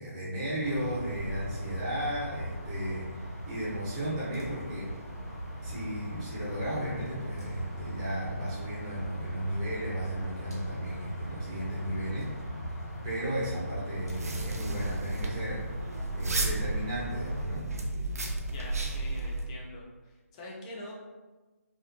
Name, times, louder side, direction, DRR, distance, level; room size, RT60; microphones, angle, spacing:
voice 1, 0.0-4.9 5.6-12.5 13.0-15.6 16.1-17.7, right 1 dB, 20° right, -9 dB, 0.7 m, -35 dB
sound 1, 0.6-17.4, equal, 85° left, 1.2 m, -39 dB
sound 2, 14.0-19.4, right 2 dB, 70° right, 0.5 m, -33 dB
voice 2, 18.5-19.8 20.3-20.9, left 1 dB, 25° left, -3 dB, 0.5 m, -44 dB
2.4 x 2.1 x 2.5 m, 1.2 s
figure-of-eight pair, 145°, 8 cm